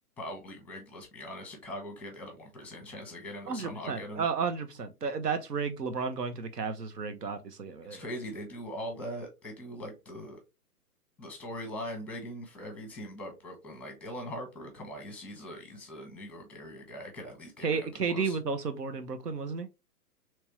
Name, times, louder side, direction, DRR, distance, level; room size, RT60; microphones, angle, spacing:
voice 1, 0.2-4.3 7.9-10.4 11.2-18.4, equal, 5° left, 0.7 m, -41 dB
voice 2, 3.5-8.0 17.6-19.7, right 5 dB, 90° right, 0.9 m, -32 dB
3.4 x 3.0 x 2.9 m
hypercardioid pair, 125°, 47 cm